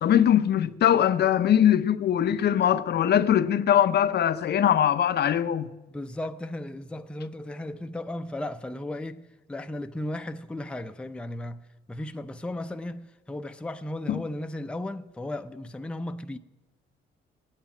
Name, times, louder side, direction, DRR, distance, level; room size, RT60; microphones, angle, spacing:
voice 1, 0.0-5.7 14.1-14.2, left 10 dB, 55° left, 0.6 m, -21 dB
voice 2, 5.9-9.2 9.5-11.6 11.9-16.4, left 1 dB, 5° left, 0.5 m, -35 dB
9.0 x 7.9 x 8.6 m
cardioid pair, 90°, 20 cm